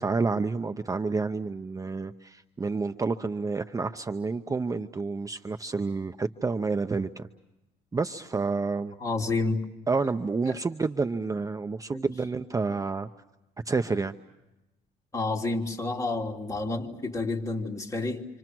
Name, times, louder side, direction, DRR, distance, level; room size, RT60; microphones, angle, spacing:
voice 1, 0.0-7.3 7.9-8.9 9.9-13.1 13.7-14.1, right 4 dB, 20° right, 0.8 m, -29 dB
voice 2, 9.0-9.6 10.5-10.6 11.9-12.1 15.1-18.3, left 3 dB, 20° left, 3.1 m, -30 dB
28.0 x 26.0 x 6.1 m
cardioid pair, 110°, 17 cm